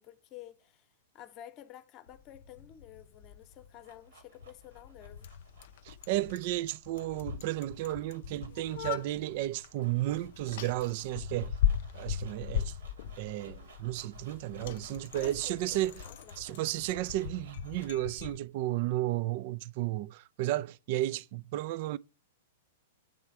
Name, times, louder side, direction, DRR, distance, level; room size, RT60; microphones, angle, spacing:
voice 1, 0.0-5.3 15.2-16.6, left 11 dB, 35° left, 0.8 m, -51 dB
Bicycle, 2.1-18.4, left 9 dB, 55° left, 0.4 m, -39 dB
sound 1, 3.4-18.0, right 4 dB, 75° right, 1.8 m, -59 dB
voice 2, 5.8-11.5 11.9-12.8 13.2-16.0 16.4-22.0, right 15 dB, 50° right, 0.3 m, -33 dB
8.6 x 3.2 x 4.6 m
figure-of-eight pair, 105°, 0 cm